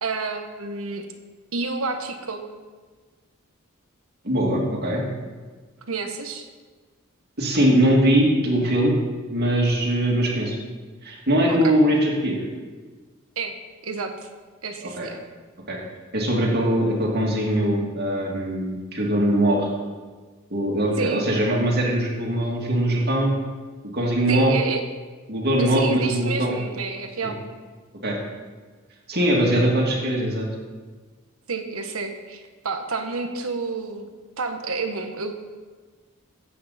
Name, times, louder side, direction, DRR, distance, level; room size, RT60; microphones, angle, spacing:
voice 1, 0.0-1.1 1.5-2.4 5.9-6.5 11.5-11.8 13.4-13.5 13.8-14.3 14.6-15.2 21.0-21.3 24.3-24.8 25.6-27.4 31.5-35.3, right 4 dB, 80° right, 6 dB, 1.2 m, -29 dB
voice 2, 4.2-5.0 7.4-9.0 9.3-10.5 11.0-12.5 14.8-15.1 15.7-15.8 16.1-19.7 20.5-23.4 23.9-24.6 25.3-26.6 27.2-27.3 28.0-28.1 29.1-30.5, right 1 dB, 50° right, -1 dB, 2.5 m, -21 dB
16.0 x 8.4 x 4.2 m, 1.4 s
head